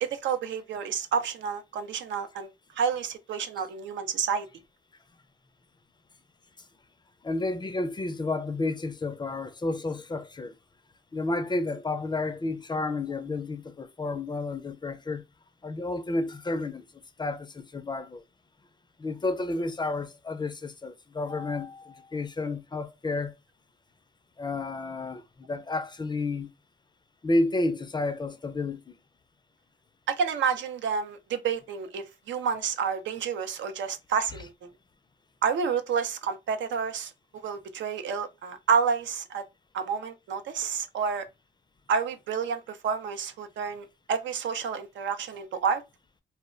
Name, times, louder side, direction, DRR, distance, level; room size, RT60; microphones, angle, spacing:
voice 1, 0.0-2.5 2.8-4.5 30.1-34.7 35.4-37.1 37.4-39.4 39.7-41.3 41.9-45.8, right 6 dB, 85° right, 0.5 m, -29 dB
voice 2, 7.2-10.5 11.1-15.2 15.6-16.8 17.2-18.2 19.0-23.3 24.4-26.5 27.2-28.9, left 2 dB, 25° left, 0.4 m, -31 dB
2.2 x 2.1 x 3.5 m
cardioid pair, 80°, 19 cm